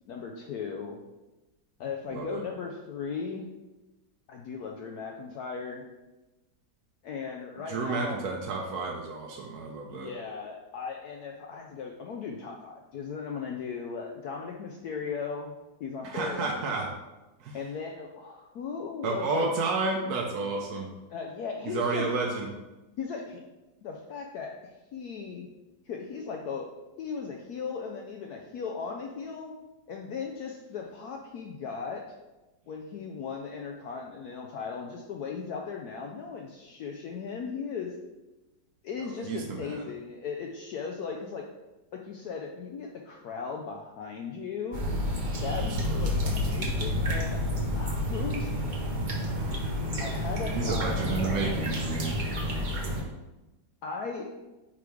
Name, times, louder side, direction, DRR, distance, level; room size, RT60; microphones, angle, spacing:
voice 1, 0.1-1.0 1.8-3.5 4.3-5.8 7.0-8.2 9.9-15.5 15.8-16.9 17.5-19.5 21.1-22.0 23.0-23.4 23.8-25.5 25.9-26.7 27.0-29.5 29.9-32.0 32.7-37.9 38.8-41.4 42.0-44.8 45.3-47.4 47.8-48.5 50.0-51.1 53.8-54.3, left 5 dB, 70° left, 1 dB, 0.9 m, -37 dB
voice 2, 2.1-2.4 7.7-10.1 16.0-16.9 17.4-17.6 19.0-20.9 21.6-22.5 39.3-39.8 45.5-46.2 50.5-52.2, right 3 dB, 65° right, 0 dB, 1.0 m, -31 dB
sound 1, 44.7-53.0, left 1 dB, 50° right, 0.5 m, -29 dB
8.4 x 3.2 x 3.5 m, 1.1 s
omnidirectional pair, 2.1 m